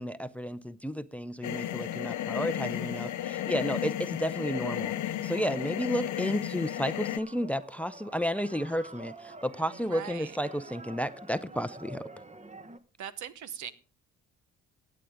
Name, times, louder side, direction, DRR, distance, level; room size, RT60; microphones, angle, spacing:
voice 1, 0.0-4.9 5.2-12.0, equal, 5° left, 0.5 m, -32 dB
sound 1, 1.4-7.2, left 12 dB, 75° left, 0.7 m, -33 dB
sound 2, 1.4-12.8, right 2 dB, 25° right, 1.0 m, -50 dB
voice 2, 9.7-10.4 13.0-13.7, right 9 dB, 75° right, 1.0 m, -40 dB
16.5 x 9.3 x 3.5 m
cardioid pair, 90°, 30 cm